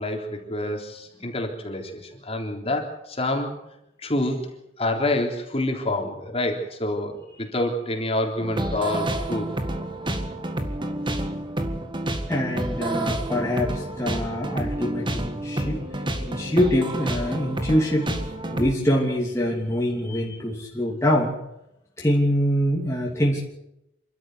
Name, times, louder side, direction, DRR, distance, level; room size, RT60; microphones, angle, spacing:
voice 1, 0.0-3.5 4.0-4.5 4.8-9.5 11.2-11.3, left 1 dB, 35° left, 2 dB, 3.6 m, -27 dB
sound 1, 8.4-18.7, right 1 dB, 25° right, 1.9 m, -29 dB
voice 2, 12.3-15.8 16.2-18.1 18.5-21.3 22.0-23.4, equal, 15° left, -3 dB, 3.0 m, -24 dB
28.0 x 12.5 x 8.0 m, 0.85 s
head